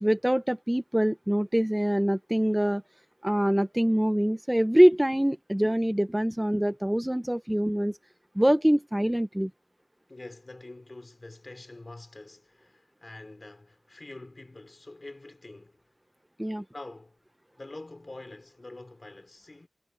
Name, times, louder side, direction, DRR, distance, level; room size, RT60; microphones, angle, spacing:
voice 1, 0.0-2.8 3.2-8.0 8.3-9.5 16.4-16.6, equal, 10° right, 1.1 m, -24 dB
voice 2, 10.1-15.8 16.7-17.2 17.5-19.7, left 2 dB, 45° left, 5.3 m, -46 dB
wide cardioid pair, 50°, 0 cm